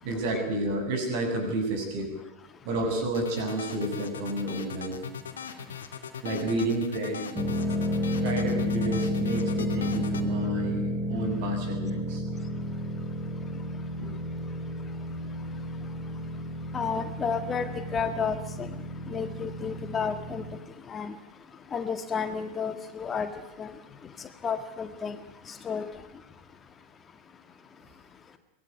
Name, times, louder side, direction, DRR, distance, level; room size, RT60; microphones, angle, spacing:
voice 1, 0.0-2.1 2.7-5.0 6.2-7.3 8.2-12.2 14.0-14.1, right 1 dB, 50° right, 4 dB, 7.3 m, -30 dB
sound 1, 3.1-10.3, left 7 dB, 65° left, 2.5 m, -39 dB
sound 2, 7.3-20.6, left 1 dB, 20° right, 4.2 m, -31 dB
voice 2, 16.7-18.7 19.1-20.4 20.9-21.1 21.7-23.3 23.6-23.7 24.4-25.2 25.5-25.8, left 6 dB, 20° left, 9 dB, 1.7 m, -31 dB
24.0 x 18.5 x 9.6 m, 0.95 s
figure-of-eight pair, 90°, 0 cm